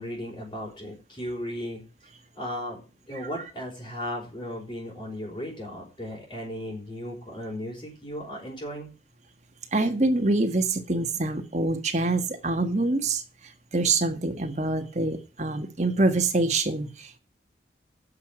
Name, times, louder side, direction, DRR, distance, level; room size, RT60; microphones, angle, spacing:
voice 1, 0.0-1.8 2.3-2.8 3.1-8.9, equal, 25° left, -5 dB, 4.9 m, -36 dB
voice 2, 9.7-17.2, right 2 dB, 40° right, 5 dB, 1.6 m, -26 dB
9.6 x 6.7 x 8.7 m, 0.32 s
head